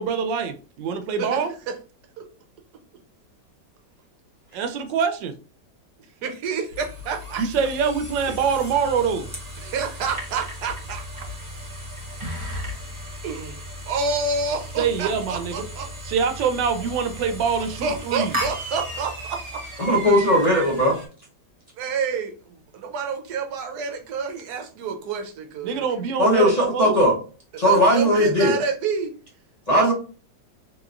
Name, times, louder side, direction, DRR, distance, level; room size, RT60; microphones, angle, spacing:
voice 1, 0.0-1.5 4.5-5.3 7.4-9.3 14.8-15.7 16.0-18.4 25.6-27.0, right 6 dB, 85° right, 1.3 m, -24 dB
voice 2, 6.2-7.4 8.3-8.4 9.6-11.0 13.2-15.9 17.8-19.8 21.8-25.8 27.6-29.1 29.7-29.9, right 5 dB, 70° right, 1.1 m, -29 dB
sound 1, 6.7-21.1, equal, 30° right, 0.5 m, -35 dB
voice 3, 19.8-21.0 26.2-27.2 27.6-28.6 29.7-29.9, equal, 35° left, 0.6 m, -18 dB
3.6 x 2.9 x 2.4 m
omnidirectional pair, 1.9 m